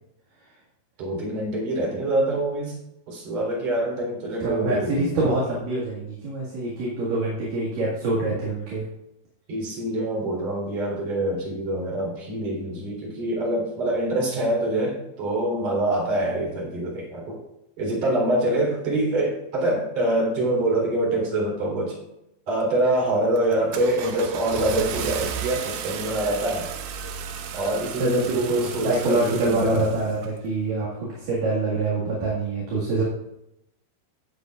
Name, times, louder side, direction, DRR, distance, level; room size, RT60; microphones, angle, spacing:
voice 1, 1.0-2.8 3.1-5.1 9.5-17.4 17.8-22.0 22.5-26.7 27.5-29.9, right 1 dB, 40° right, -3 dB, 4.5 m, -25 dB
voice 2, 4.4-8.8 28.0-33.0, right 2 dB, 55° right, -6 dB, 3.1 m, -25 dB
Car / Engine starting, 22.6-22.9 23.4-30.3, right 7 dB, 75° right, 2.7 m, -34 dB
16.5 x 8.2 x 2.5 m, 0.84 s
omnidirectional pair, 5.4 m